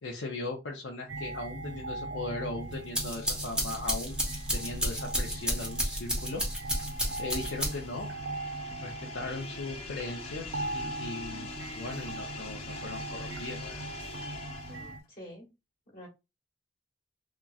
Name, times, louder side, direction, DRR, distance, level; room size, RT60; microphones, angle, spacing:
voice 1, 0.0-6.4 7.2-8.1 8.8-11.5 11.8-13.8, left 2 dB, 85° left, -1 dB, 0.5 m, -38 dB
sound 1, 1.1-15.0, right 2 dB, 70° right, 0.4 m, -40 dB
sound 2, 2.7-8.0, equal, 5° right, 0.7 m, -32 dB
sound 3, 3.2-15.1, left 3 dB, 35° left, 0.5 m, -45 dB
voice 2, 14.7-15.5 15.9-16.1, left 1 dB, 50° left, -2 dB, 1.1 m, -48 dB
2.9 x 2.4 x 2.3 m, 0.25 s
head